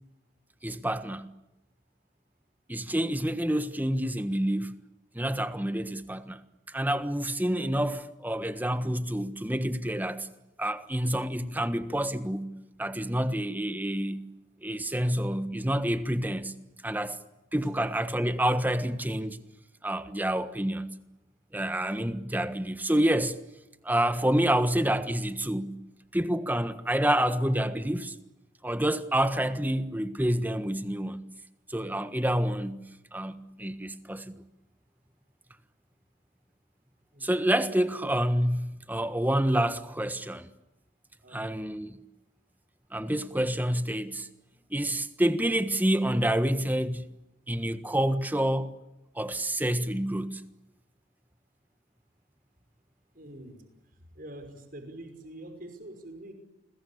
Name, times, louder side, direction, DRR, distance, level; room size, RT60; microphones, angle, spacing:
voice 1, 0.6-1.3 2.7-4.8 5.1-6.4 6.7-10.3 10.6-12.5 12.8-14.3 14.6-16.5 16.8-17.2 17.5-19.4 19.8-20.9 21.5-23.4 23.8-25.8 26.1-28.1 28.6-31.2 31.7-32.8 33.1-34.3 37.2-40.5 41.3-42.0 42.9-44.3 44.7-47.1 47.5-48.8 49.1-50.4, right 1 dB, 10° right, 1.4 m, -28 dB
voice 2, 41.2-41.7 53.1-53.6 53.9-56.3, right 1 dB, 45° right, 5.6 m, -45 dB
29.5 x 21.5 x 8.6 m
head